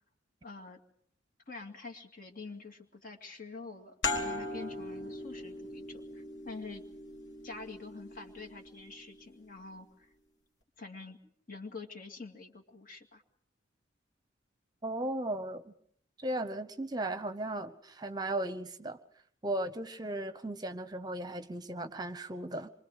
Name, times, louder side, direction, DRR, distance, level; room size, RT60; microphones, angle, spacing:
voice 1, 0.4-0.8 1.5-6.8 7.4-10.1 10.8-11.2 11.5-13.2, left 3 dB, 45° left, 4 dB, 2.5 m, -46 dB
sound 1, 4.0-9.3, left 2 dB, 65° left, 3.2 m, -39 dB
voice 2, 14.8-15.7 16.2-19.0 19.4-22.7, right 1 dB, 20° right, 10 dB, 1.0 m, -36 dB
27.5 x 24.0 x 4.9 m, 0.63 s
head